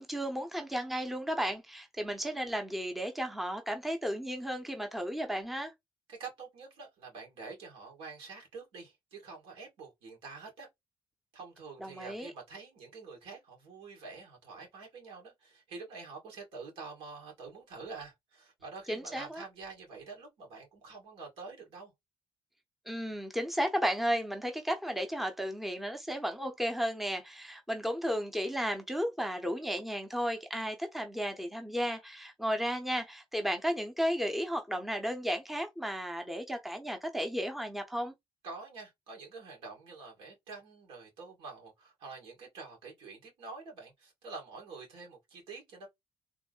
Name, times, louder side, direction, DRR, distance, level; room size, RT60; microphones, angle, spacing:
voice 1, 0.0-5.7 11.8-12.3 18.9-19.4 22.9-38.1, equal, ahead, 0.7 m, -34 dB
voice 2, 6.1-10.7 11.3-21.9 38.4-45.9, right 4 dB, 85° right, 2.0 m, -47 dB
3.6 x 2.0 x 3.8 m
cardioid pair, 110°, 9 cm